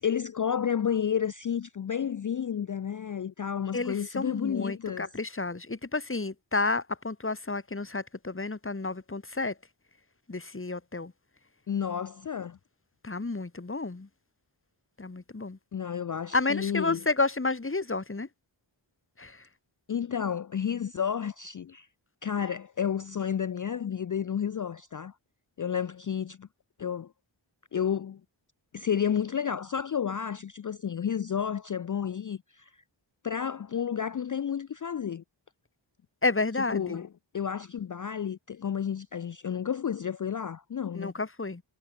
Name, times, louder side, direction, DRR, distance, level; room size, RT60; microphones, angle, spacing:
voice 1, 0.0-5.1 11.7-12.6 15.7-17.0 19.9-21.9 22.2-25.1 25.6-26.5 26.8-27.1 27.7-28.2 28.7-32.7 33.2-35.2 36.7-37.1 37.3-41.1, left 8 dB, 40° left, 0.4 m, -31 dB
voice 2, 3.7-9.6 10.3-11.1 13.0-14.1 15.0-15.6 16.3-18.3 19.2-19.5 36.2-37.0 40.9-41.6, left 3 dB, 25° left, 1.4 m, -31 dB
wide cardioid pair, 60°, 49 cm